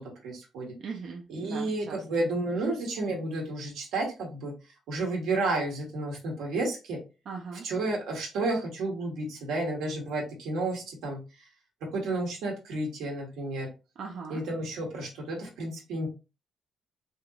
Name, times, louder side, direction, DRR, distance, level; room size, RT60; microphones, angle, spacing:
voice 1, 0.0-0.7 1.3-4.5 4.9-7.0 7.6-11.2 11.8-13.7 14.3-16.1, right 2 dB, 85° right, 0 dB, 1.2 m, -31 dB
voice 2, 0.8-2.0 2.5-2.7 7.3-7.7 14.0-14.4, right 5 dB, 60° right, 1 dB, 0.5 m, -39 dB
3.4 x 2.8 x 2.4 m, 0.30 s
cardioid pair, 90°, 0 cm